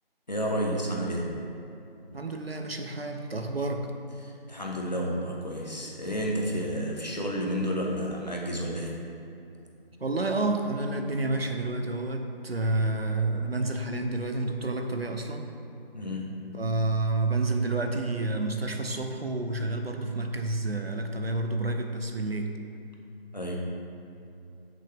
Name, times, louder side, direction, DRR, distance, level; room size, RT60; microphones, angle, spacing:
voice 1, 0.3-1.4 4.2-9.0 15.9-16.4 23.3-23.6, equal, 45° left, -1 dB, 1.2 m, -31 dB
voice 2, 2.1-3.9 10.0-15.5 16.5-22.5, right 2 dB, 75° right, 4 dB, 1.0 m, -29 dB
10.0 x 6.5 x 3.5 m, 2.7 s
figure-of-eight pair, 180°, 30 cm